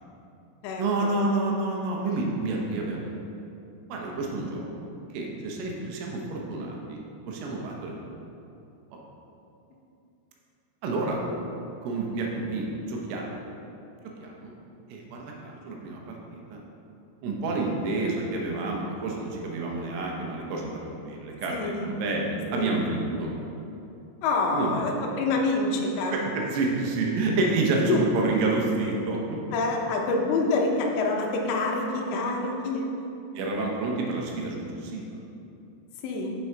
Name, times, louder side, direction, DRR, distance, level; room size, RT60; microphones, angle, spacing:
voice 1, 0.8-3.2 3.9-7.9 10.8-11.2 11.8-13.3 14.2-14.5 14.9-16.6 17.2-23.3 24.5-24.7 26.1-29.4 33.3-35.1, right 3 dB, 80° right, -1 dB, 3.4 m, -29 dB
voice 2, 21.5-21.9 22.5-22.7 24.2-26.2 27.9-28.0 29.5-32.9 36.0-36.4, left 3 dB, 75° left, 0 dB, 2.8 m, -26 dB
7.6 x 6.1 x 4.5 m, 2.8 s
omnidirectional pair, 5.6 m